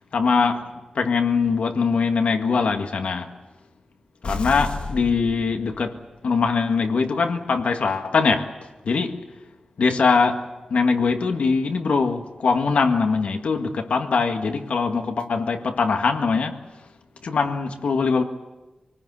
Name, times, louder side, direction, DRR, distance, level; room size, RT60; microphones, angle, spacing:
voice 1, 0.1-3.3 4.2-8.5 8.8-9.2 9.8-10.5 10.7-16.6 17.2-18.2, left 4 dB, 85° left, 1.8 m, -22 dB
sound 1, 4.2-6.1, left 3 dB, 65° left, 1.6 m, -32 dB
25.0 x 19.5 x 8.2 m
wide cardioid pair, 90°, 2 cm